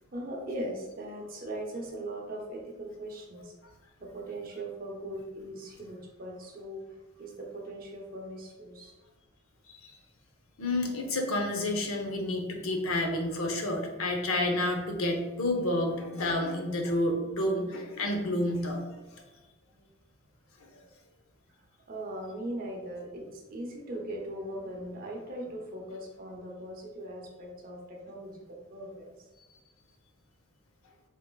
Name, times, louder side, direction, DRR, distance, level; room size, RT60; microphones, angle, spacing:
voice 1, 0.1-3.5 4.0-6.8 7.2-8.9 21.9-29.1, right 1 dB, 45° right, 0 dB, 0.7 m, -39 dB
voice 2, 10.6-18.8 19.1-19.2 20.7-20.8, left 1 dB, 85° left, 3 dB, 0.7 m, -30 dB
4.0 x 3.6 x 2.3 m, 1.2 s
head